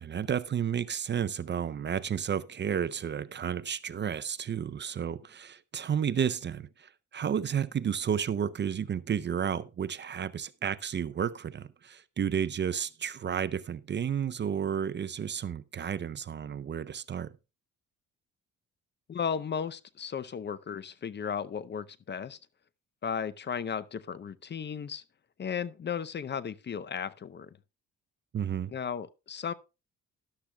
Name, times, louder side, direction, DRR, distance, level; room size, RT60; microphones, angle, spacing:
voice 1, 0.0-17.3 28.3-28.7, right 8 dB, 35° right, 0.5 m, -32 dB
voice 2, 19.1-22.4 23.0-25.0 25.4-27.5 28.7-29.5, left 7 dB, 35° left, 0.6 m, -35 dB
13.0 x 11.5 x 2.2 m
cardioid pair, 90°, 30 cm